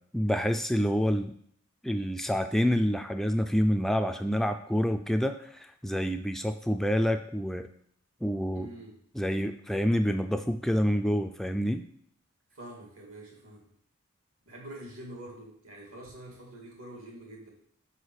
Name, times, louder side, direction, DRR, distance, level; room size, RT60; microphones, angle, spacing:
voice 1, 0.1-1.3 1.8-7.7 8.2-8.7 9.2-11.8, equal, ahead, 7 dB, 0.3 m, -27 dB
voice 2, 8.5-9.0 12.5-13.7 14.5-17.5, right 1 dB, 90° right, -1 dB, 2.7 m, -46 dB
5.7 x 4.9 x 6.4 m, 0.65 s
head